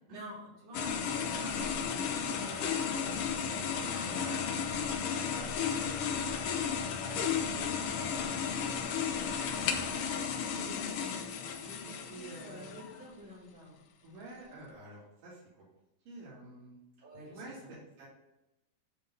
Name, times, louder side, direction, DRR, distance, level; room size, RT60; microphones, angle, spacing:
voice 1, 0.1-3.9 5.1-5.2 5.7-9.1 9.5-11.2 11.6-13.7 17.0-17.8, equal, 60° right, -6 dB, 5.1 m, -49 dB
sound 1, 0.7-13.0, left 7 dB, 85° left, 1.3 m, -34 dB
voice 2, 3.9-5.8 11.6-12.7 14.0-15.4 16.1-16.8 17.3-18.1, right 2 dB, 90° right, -8 dB, 4.4 m, -49 dB
11.5 x 3.9 x 5.4 m, 0.94 s
omnidirectional pair, 3.8 m